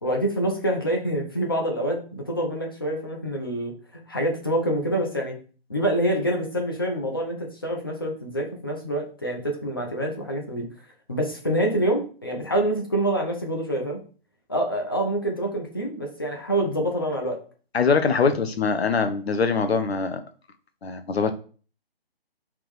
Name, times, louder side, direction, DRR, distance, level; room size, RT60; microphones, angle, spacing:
voice 1, 0.0-5.4 5.7-10.7 11.1-14.0 14.5-17.4, right 1 dB, 25° left, 1 dB, 0.5 m, -26 dB
voice 2, 17.7-20.2 20.8-21.3, left 5 dB, 80° left, 9 dB, 0.9 m, -23 dB
3.6 x 3.0 x 4.7 m, 0.40 s
hypercardioid pair, 170°, 31 cm